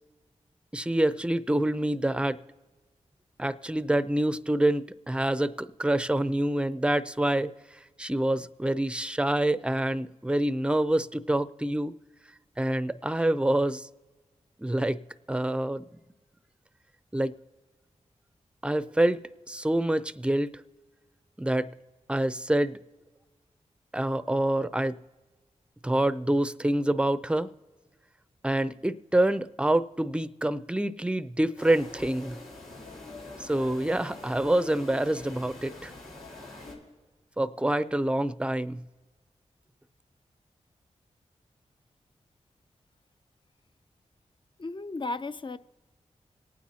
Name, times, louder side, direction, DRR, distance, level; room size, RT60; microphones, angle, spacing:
voice 1, 0.7-2.4 3.4-7.5 8.0-12.0 12.6-13.9 14.6-15.0 15.3-15.8 17.1-17.4 18.6-20.5 21.4-21.7 22.1-22.8 23.9-25.0 25.8-27.5 28.4-32.4 33.4-35.9 37.4-38.8, right 1 dB, 10° right, 0.5 m, -26 dB
sound 1, 31.6-36.7, left 2 dB, 90° left, 4.0 m, -44 dB
voice 2, 44.6-45.6, left 3 dB, 40° left, 0.6 m, -34 dB
26.0 x 9.2 x 2.8 m
cardioid pair, 45°, 13 cm